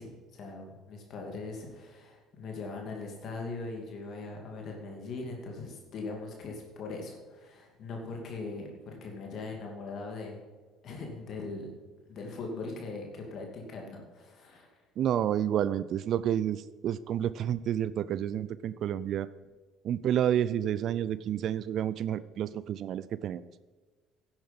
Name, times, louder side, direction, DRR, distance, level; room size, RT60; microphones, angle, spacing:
voice 1, 0.0-10.4 10.8-11.7 12.1-14.8, left 3 dB, 55° left, 1 dB, 2.7 m, -40 dB
voice 2, 15.0-19.3 19.8-23.5, right 10 dB, 55° right, 17 dB, 0.4 m, -30 dB
11.0 x 8.9 x 5.4 m, 1.4 s
supercardioid pair, 80°, 0 cm